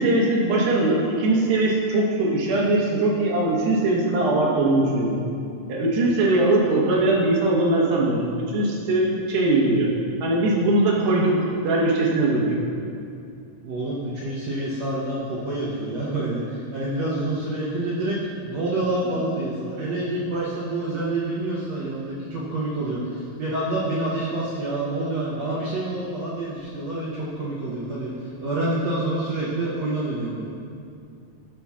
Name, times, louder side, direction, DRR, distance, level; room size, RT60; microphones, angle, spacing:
voice 1, 0.0-5.2 5.7-9.9 10.2-12.6, right 2 dB, 90° right, -4 dB, 2.9 m, -21 dB
voice 2, 13.6-30.5, right 2 dB, 75° right, -7 dB, 1.6 m, -27 dB
14.0 x 5.5 x 2.3 m, 2.5 s
omnidirectional pair, 4.1 m